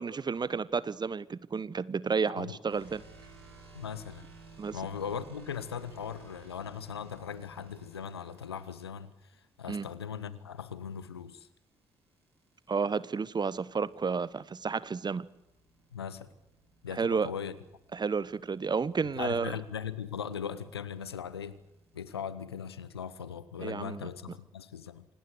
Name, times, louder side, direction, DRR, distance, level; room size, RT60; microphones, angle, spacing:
voice 1, 0.0-3.0 4.6-4.8 9.7-9.9 12.7-15.3 17.0-17.3 17.9-19.5 23.6-24.1, right 5 dB, 35° right, 20 dB, 1.1 m, -31 dB
sound 1, 2.7-8.7 11.2-22.2, right 3 dB, 85° right, 6.8 m, -57 dB
voice 2, 3.7-4.3 4.7-11.5 15.9-16.3 16.8-17.6 19.1-21.6 21.9-25.1, left 7 dB, 85° left, 16 dB, 1.0 m, -39 dB
27.0 x 18.5 x 8.0 m, 0.88 s
figure-of-eight pair, 40°, 13 cm